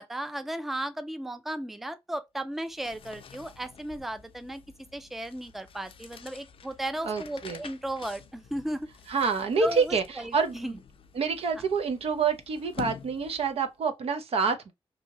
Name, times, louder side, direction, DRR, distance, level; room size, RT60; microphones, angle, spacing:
voice 1, 0.0-4.6 4.9-8.9 9.6-10.8, right 1 dB, ahead, 0.3 m, -35 dB
sound 1, 2.5-13.7, left 7 dB, 65° left, 0.4 m, -48 dB
voice 2, 7.0-7.6 9.1-10.8 11.1-14.7, right 5 dB, 75° right, 0.6 m, -27 dB
2.7 x 2.7 x 2.8 m
wide cardioid pair, 115°, 10 cm